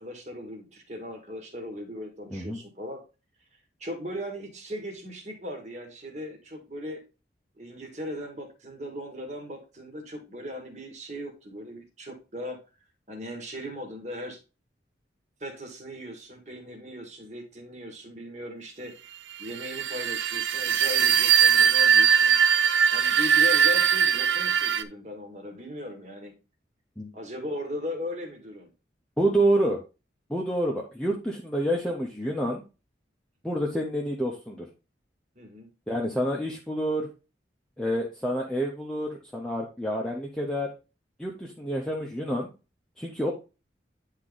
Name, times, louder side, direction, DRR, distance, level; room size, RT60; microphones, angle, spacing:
voice 1, 0.0-3.0 3.8-7.0 7.6-12.6 13.1-14.4 15.4-19.1 19.4-22.4 22.9-26.3 27.1-28.7 35.4-35.7, left 1 dB, 40° right, 2 dB, 1.7 m, -38 dB
sound 1, 19.5-24.8, right 7 dB, 80° right, 0.6 m, -21 dB
voice 2, 29.2-29.8 30.3-32.6 33.4-34.7 35.9-37.1 37.8-40.7 41.2-42.5 43.0-43.3, right 1 dB, 5° left, -3 dB, 0.9 m, -28 dB
9.6 x 3.7 x 3.9 m, 0.30 s
head